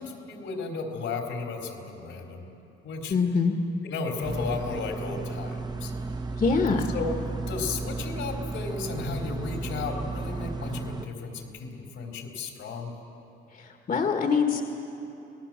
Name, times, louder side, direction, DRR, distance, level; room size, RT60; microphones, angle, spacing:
voice 1, 0.0-2.5 2.8-3.2 3.8-5.9 6.9-12.9, left 4 dB, 85° left, 1 dB, 3.8 m, -34 dB
voice 2, 3.1-3.5 6.4-6.9 13.9-14.6, left 5 dB, 45° left, 3 dB, 1.6 m, -23 dB
sound 1, 4.2-11.1, right 3 dB, 20° right, 1.1 m, -34 dB
27.0 x 19.0 x 7.5 m, 3.0 s
cardioid pair, 90°, 20 cm